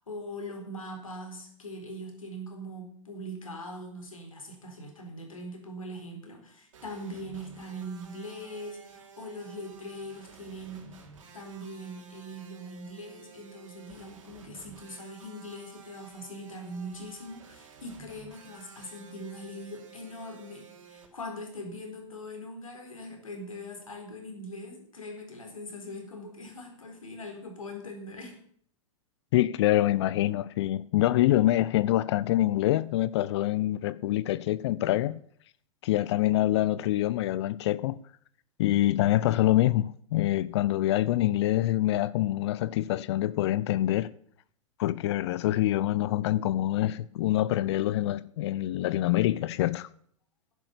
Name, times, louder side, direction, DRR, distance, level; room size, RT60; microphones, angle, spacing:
voice 1, 0.1-11.0 11.3-28.3, equal, 85° left, 4.1 m, -41 dB
sound 1, 6.7-21.1, right 6 dB, 70° right, 3.2 m, -52 dB
voice 2, 29.3-35.2 35.8-38.0 38.6-44.1 44.8-49.9, left 14 dB, 55° left, 0.5 m, -25 dB
11.0 x 11.0 x 6.8 m
figure-of-eight pair, 100°, 17 cm